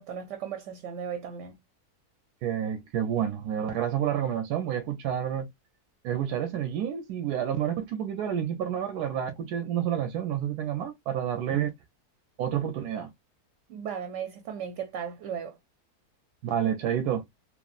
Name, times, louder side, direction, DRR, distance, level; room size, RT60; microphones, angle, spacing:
voice 1, 0.0-1.6 13.7-15.6, right 8 dB, 65° right, 0.8 m, -36 dB
voice 2, 2.4-5.5 6.0-11.7 12.4-13.1 16.4-17.3, right 9 dB, 85° right, 1.1 m, -29 dB
3.1 x 2.3 x 2.3 m
omnidirectional pair, 1.6 m